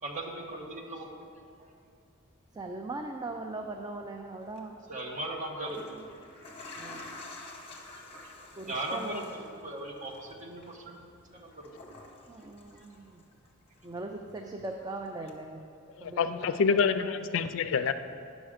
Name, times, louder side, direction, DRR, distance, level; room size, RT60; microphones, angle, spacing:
voice 1, 0.0-1.3 4.9-6.1 7.9-8.3 8.7-9.2 9.5-11.7 12.7-12.9, right 1 dB, 40° right, 0 dB, 1.1 m, -38 dB
voice 2, 2.5-4.9 6.8-7.1 8.6-9.3 12.3-13.2 13.8-15.6 16.0-16.8, right 2 dB, 20° right, 3 dB, 0.4 m, -40 dB
sound 1, 4.4-4.6 5.4-13.5 13.8-14.8 15.3-15.4, left 2 dB, 30° left, 1.1 m, -49 dB
voice 3, 16.0-17.9, left 5 dB, 65° left, 11 dB, 0.4 m, -27 dB
9.9 x 6.3 x 4.9 m, 2.4 s
head